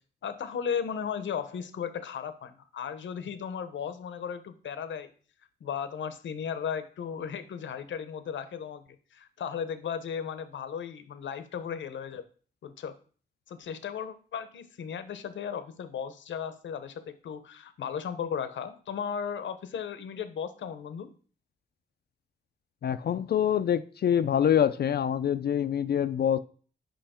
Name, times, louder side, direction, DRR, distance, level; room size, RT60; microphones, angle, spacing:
voice 1, 0.2-5.1 5.6-8.8 9.1-12.2 12.6-12.9 13.5-21.1, left 7 dB, 80° left, 0.8 m, -35 dB
voice 2, 22.8-26.4, left 9 dB, 60° left, 0.4 m, -25 dB
5.5 x 5.3 x 4.3 m
cardioid pair, 90°, 19 cm